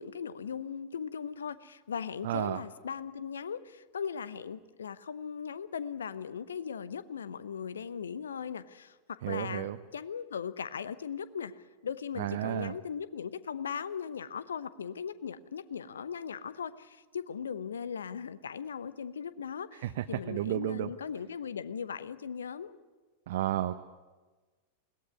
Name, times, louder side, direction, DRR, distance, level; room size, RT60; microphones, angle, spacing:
voice 1, 0.0-22.8, left 7 dB, 70° left, 16 dB, 0.9 m, -38 dB
voice 2, 2.2-2.6 9.2-9.8 12.2-12.7 19.8-20.9 23.3-23.7, right 13 dB, 55° right, 8 dB, 0.8 m, -32 dB
21.5 x 18.5 x 9.8 m, 1.3 s
figure-of-eight pair, 90°, 0 cm